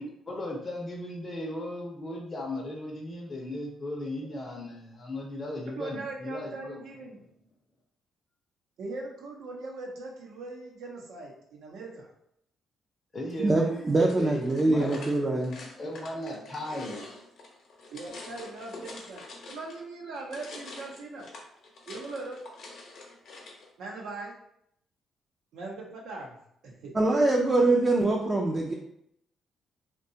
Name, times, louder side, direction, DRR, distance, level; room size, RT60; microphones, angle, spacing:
voice 1, 0.0-6.8 13.1-15.0 15.8-17.0, left 1 dB, 30° left, -1 dB, 0.5 m, -36 dB
voice 2, 5.7-7.2 8.8-12.1 17.9-21.3 21.9-22.4 23.8-24.3 25.5-26.4 26.6-26.9, right 3 dB, 80° right, -1 dB, 0.7 m, -40 dB
voice 3, 13.4-15.6 26.9-28.7, right 2 dB, 25° right, -1 dB, 0.4 m, -24 dB
sound 1, 13.9-19.8 20.1-23.7, left 3 dB, 70° left, 0.7 m, -46 dB
2.7 x 2.2 x 2.7 m, 0.73 s
cardioid pair, 90°, 0 cm